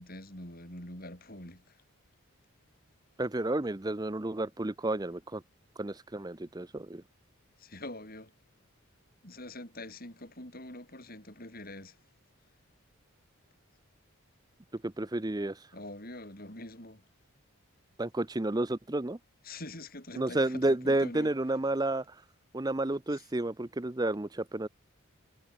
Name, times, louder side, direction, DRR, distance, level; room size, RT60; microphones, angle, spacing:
voice 1, 0.0-1.8 7.6-8.3 9.2-12.0 15.7-17.0 19.4-21.3 23.1-23.3, left 1 dB, 40° left, 7.9 m, -44 dB
voice 2, 3.2-5.4 5.8-7.0 14.8-15.7 18.0-19.2 20.1-22.2 22.5-24.7, right 2 dB, 20° right, 0.6 m, -31 dB
head